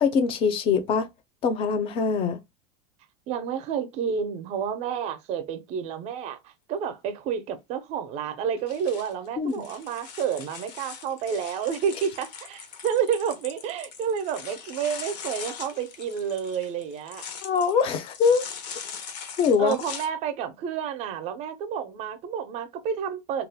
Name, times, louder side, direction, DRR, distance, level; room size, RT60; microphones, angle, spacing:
voice 1, 0.0-1.1 1.4-2.4 9.4-9.7 17.4-18.4 19.4-19.8, left 6 dB, 25° left, 0.4 m, -23 dB
voice 2, 3.3-17.2 19.6-23.5, right 7 dB, 35° right, 0.5 m, -30 dB
sound 1, 8.6-20.1, left 7 dB, 80° left, 0.7 m, -41 dB
2.3 x 2.1 x 3.4 m
supercardioid pair, 145°, 21 cm